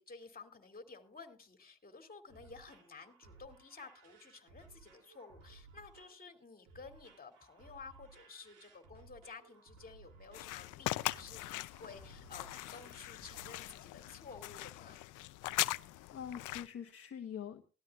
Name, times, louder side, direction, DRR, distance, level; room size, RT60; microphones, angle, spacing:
voice 1, 0.0-15.0, left 4 dB, 30° left, 5 dB, 2.7 m, -53 dB
sound 1, 2.0-13.5, right 4 dB, 90° right, 3.1 m, -60 dB
sound 2, 10.3-16.7, left 17 dB, 85° left, 0.6 m, -40 dB
voice 2, 15.8-17.6, left 8 dB, 50° left, 3 dB, 1.2 m, -45 dB
18.5 x 13.0 x 2.4 m, 0.34 s
cardioid pair, 90°, 30 cm